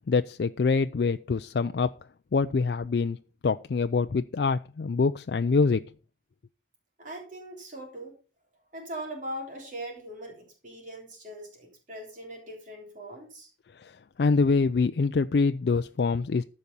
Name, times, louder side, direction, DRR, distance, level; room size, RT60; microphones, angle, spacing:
voice 1, 0.1-1.9 2.3-3.2 3.4-5.9 13.7-16.4, left 4 dB, 65° left, 9 dB, 0.4 m, -25 dB
voice 2, 7.0-8.1 8.7-13.5, right 1 dB, 45° right, 0 dB, 3.4 m, -40 dB
14.5 x 5.4 x 5.4 m, 0.35 s
head